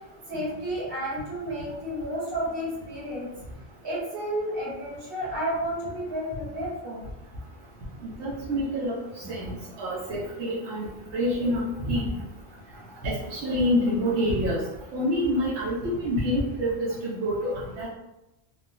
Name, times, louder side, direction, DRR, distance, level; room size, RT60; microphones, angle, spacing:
voice 1, 0.3-3.3 3.8-7.0, equal, 55° right, -7 dB, 1.3 m, -31 dB
voice 2, 8.2-8.9 9.3-9.4 9.8-10.9 11.1-12.1 13.0-14.6 14.9-17.9, equal, 85° right, -7 dB, 1.0 m, -27 dB
3.1 x 2.1 x 2.5 m, 0.94 s
omnidirectional pair, 1.1 m